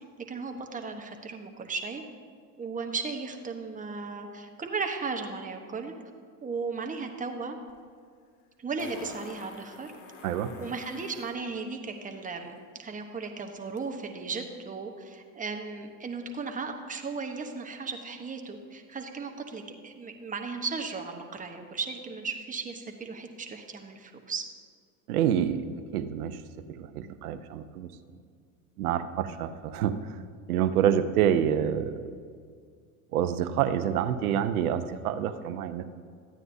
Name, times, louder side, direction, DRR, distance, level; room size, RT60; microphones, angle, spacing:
voice 1, 0.2-2.0 2.6-5.9 6.4-7.6 8.6-9.9 10.6-24.5, right 4 dB, 20° right, 4 dB, 1.0 m, -36 dB
Fart, 7.7-7.8 8.8-11.3 13.8-13.9, left 4 dB, 60° left, 1.8 m, -47 dB
voice 2, 25.1-25.6 25.9-26.4 26.8-27.9 28.8-30.1 30.5-32.1 33.1-35.9, right 9 dB, 80° right, 11 dB, 0.7 m, -27 dB
13.0 x 9.1 x 2.7 m, 2.1 s
hypercardioid pair, 90°, 43 cm